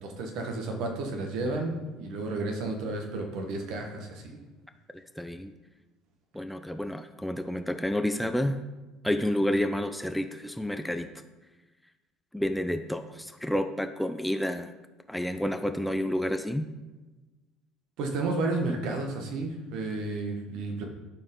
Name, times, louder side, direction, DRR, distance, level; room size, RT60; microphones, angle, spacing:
voice 1, 0.0-4.4 18.0-20.8, right 2 dB, 65° right, 2 dB, 1.5 m, -32 dB
voice 2, 4.9-5.5 6.3-8.6 9.0-11.1 12.3-14.7 15.1-16.7, left 1 dB, 5° left, 8 dB, 0.6 m, -30 dB
11.5 x 4.6 x 3.8 m, 1.2 s
hypercardioid pair, 70°, 0 cm